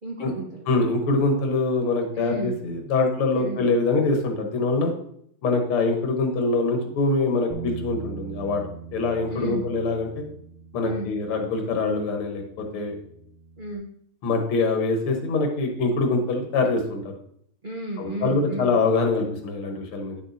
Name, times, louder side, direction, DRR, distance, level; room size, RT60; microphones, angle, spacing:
voice 1, 0.0-0.7 2.1-2.5 3.3-3.6 9.3-9.7 10.8-11.1 13.6-13.9 17.6-18.7, right 1 dB, 90° right, -1 dB, 0.4 m, -33 dB
voice 2, 0.7-4.9 5.4-8.6 8.9-10.2 10.7-13.0 14.2-17.0 18.0-20.2, left 3 dB, 85° left, 3 dB, 2.0 m, -24 dB
Bass guitar, 7.5-13.8, right 6 dB, 70° right, 1.5 m, -41 dB
9.8 x 6.3 x 2.7 m, 0.69 s
omnidirectional pair, 2.3 m